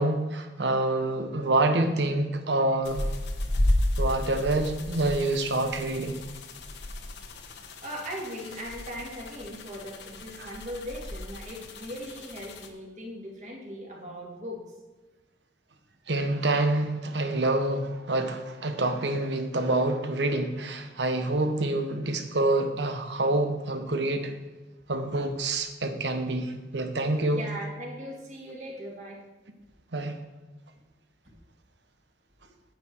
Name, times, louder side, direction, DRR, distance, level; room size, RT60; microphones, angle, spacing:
voice 1, 0.0-3.0 4.0-6.1 10.4-10.5 16.1-24.3 24.9-27.4 29.9-30.1, right 2 dB, 80° right, 7 dB, 1.1 m, -27 dB
sound 1, 2.8-12.7, left 1 dB, 80° left, 1.1 m, -33 dB
voice 2, 7.8-14.6 27.3-29.2, equal, 40° right, -2 dB, 2.4 m, -39 dB
9.4 x 8.6 x 4.6 m, 1.2 s
head